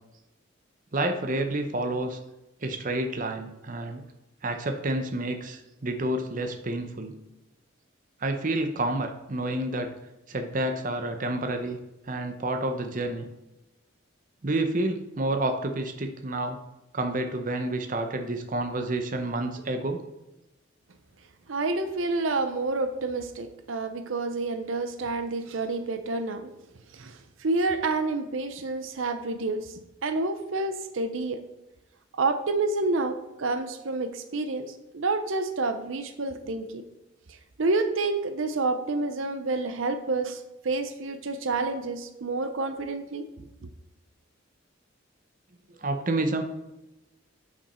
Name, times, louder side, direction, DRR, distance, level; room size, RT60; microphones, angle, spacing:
voice 1, 0.9-2.2 2.6-4.0 4.4-7.1 8.2-9.9 10.3-11.8 12.1-13.3 14.4-16.6 16.9-20.0 45.7-46.4, right 2 dB, 40° right, 6 dB, 0.7 m, -29 dB
voice 2, 21.5-26.5 26.9-29.7 30.0-31.4 32.1-36.8 37.3-43.3, right 3 dB, 75° right, 9 dB, 0.6 m, -29 dB
6.9 x 6.0 x 4.3 m, 0.96 s
head